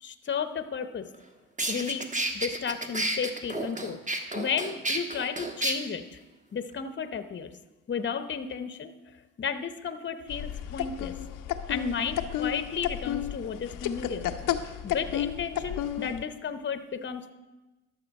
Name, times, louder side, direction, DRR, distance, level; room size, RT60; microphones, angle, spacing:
voice 1, 0.0-1.1 1.7-2.0 2.3-4.0 4.3-6.2 6.5-7.5 7.9-8.9 9.4-11.1 11.7-14.2 14.8-17.3, left 6 dB, 35° left, 10 dB, 0.8 m, -33 dB
sound 1, 1.1-1.2 1.6-5.7, right 1 dB, 25° right, 1.3 m, -31 dB
sound 2, 10.3-16.2, left 10 dB, 85° left, 0.7 m, -32 dB
12.5 x 6.7 x 5.3 m, 1.1 s
cardioid pair, 70°, 32 cm